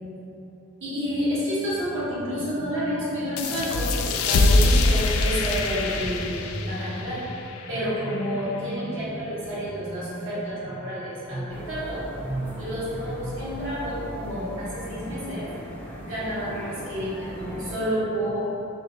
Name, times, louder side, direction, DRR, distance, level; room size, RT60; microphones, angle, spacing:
voice 1, 0.8-7.2 7.6-15.5 16.0-18.4, equal, 60° right, -10 dB, 1.2 m, -29 dB
sound 1, 3.4-8.6, left 2 dB, 80° left, 0.3 m, -24 dB
sound 2, 11.5-17.8, equal, 10° left, 0.4 m, -39 dB
3.5 x 2.6 x 3.6 m, 2.9 s
head